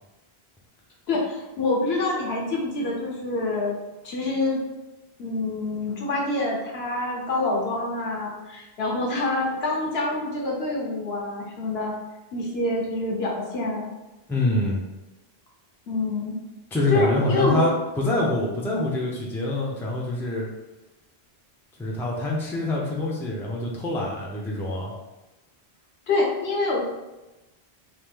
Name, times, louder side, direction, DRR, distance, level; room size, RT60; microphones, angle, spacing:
voice 1, 1.1-3.8 4.0-4.6 5.2-11.9 12.3-13.9 15.9-16.4 16.9-17.7 26.1-26.8, left 2 dB, 75° left, -2 dB, 1.1 m, -26 dB
voice 2, 14.3-14.8 16.7-20.5 21.8-24.9, left 2 dB, 5° left, -3 dB, 0.5 m, -25 dB
3.1 x 2.4 x 3.5 m, 1.1 s
omnidirectional pair, 1.1 m